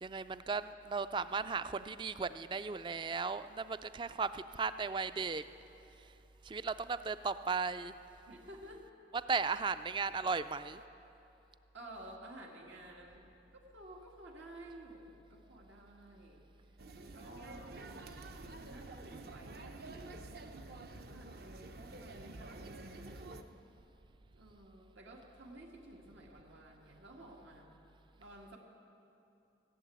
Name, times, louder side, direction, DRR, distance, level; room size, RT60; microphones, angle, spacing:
voice 1, 0.0-5.4 6.4-7.9 9.3-10.8, right 5 dB, 25° right, 13 dB, 0.3 m, -36 dB
voice 2, 8.3-8.9 11.7-16.5 16.9-18.1 18.6-20.0 20.6-23.2 24.3-27.7 28.2-28.6, right 1 dB, 85° right, -1 dB, 1.9 m, -53 dB
sound 1, 16.8-23.4, right 2 dB, 55° right, 0.7 m, -49 dB
16.5 x 7.4 x 9.2 m, 2.8 s
head